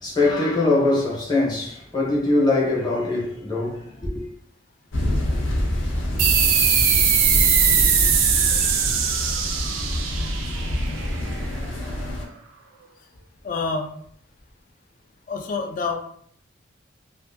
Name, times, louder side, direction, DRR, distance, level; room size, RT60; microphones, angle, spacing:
voice 1, 0.0-4.2, left 2 dB, 20° left, 0.7 m, -22 dB
sound 1, 4.9-12.3, left 1 dB, 80° left, 0.6 m, -26 dB
sound 2, 6.2-11.4, right 7 dB, 75° right, 0.4 m, -20 dB
voice 2, 13.4-13.9 15.3-16.0, left 4 dB, 40° left, 0.4 m, -27 dB
2.5 x 2.5 x 2.5 m
head